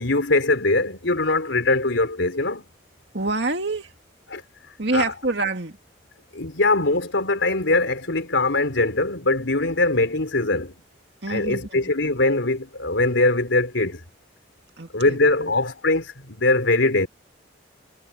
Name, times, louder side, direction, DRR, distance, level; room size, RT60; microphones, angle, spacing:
voice 1, 0.0-2.7 4.3-4.4 4.9-5.1 6.3-10.7 11.3-14.0 14.9-17.1, left 2 dB, 80° left, 3.8 m, -22 dB
voice 2, 3.1-3.9 4.8-5.8 11.2-11.9 14.8-15.5, right 2 dB, 60° right, 2.5 m, -27 dB
head